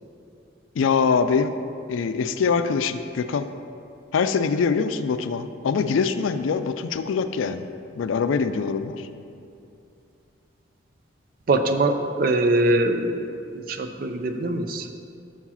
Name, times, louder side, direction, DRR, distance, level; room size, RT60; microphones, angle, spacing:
voice 1, 0.8-1.6 1.9-3.5 4.1-7.7 7.9-9.1, left 5 dB, 85° left, 10 dB, 0.4 m, -23 dB
voice 2, 11.5-13.1 13.5-14.9, right 2 dB, 45° right, 7 dB, 0.4 m, -22 dB
6.0 x 4.7 x 5.6 m, 2.6 s
head